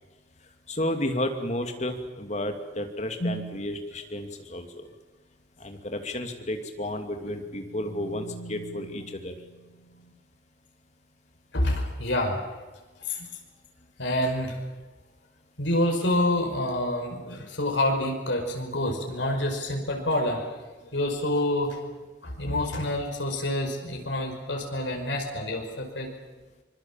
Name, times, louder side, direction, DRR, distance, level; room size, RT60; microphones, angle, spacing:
voice 1, 0.7-4.9 5.6-9.3, left 1 dB, 40° left, 6 dB, 2.6 m, -32 dB
sound 1, 3.2-3.8 6.6-10.1, right 1 dB, 55° left, 3.1 m, -39 dB
voice 2, 11.5-12.4 13.0-13.3 14.0-14.6 15.6-20.6 20.9-21.8 22.2-26.1, left 1 dB, 90° left, 2 dB, 5.4 m, -27 dB
25.0 x 23.0 x 7.5 m, 1.3 s
head